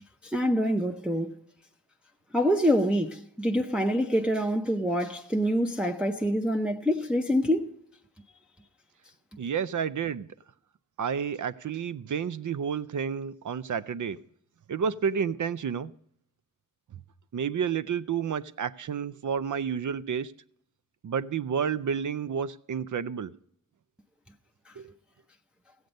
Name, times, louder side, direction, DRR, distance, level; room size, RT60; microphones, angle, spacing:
voice 1, 0.2-1.4 2.3-7.7, equal, 5° right, 0.6 m, -26 dB
voice 2, 9.4-10.3 11.0-14.2 14.7-15.9 17.3-20.3 21.0-23.3 24.8-24.9, right 7 dB, 65° right, 0.5 m, -30 dB
16.0 x 7.9 x 5.3 m
wide cardioid pair, 90°, 33 cm